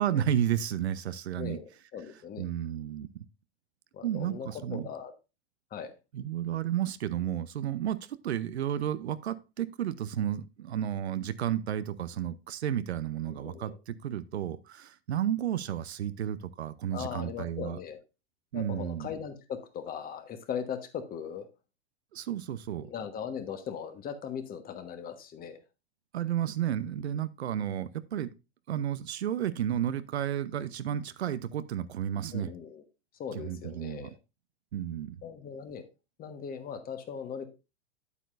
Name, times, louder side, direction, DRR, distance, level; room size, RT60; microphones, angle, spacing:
voice 1, 0.0-1.6 2.4-3.2 4.0-4.9 6.1-17.8 18.5-19.1 22.1-22.9 26.1-28.3 28.7-32.5 33.3-34.1 34.7-35.2, right 10 dB, 80° right, 0.8 m, -32 dB
voice 2, 1.4-2.5 3.9-5.1 5.7-5.9 13.3-13.8 16.9-18.0 18.5-21.5 22.8-25.6 32.3-32.8 33.2-34.1 35.2-35.8 36.2-37.5, left 7 dB, 25° left, 1.3 m, -39 dB
9.2 x 8.3 x 2.5 m
hypercardioid pair, 110°, 33 cm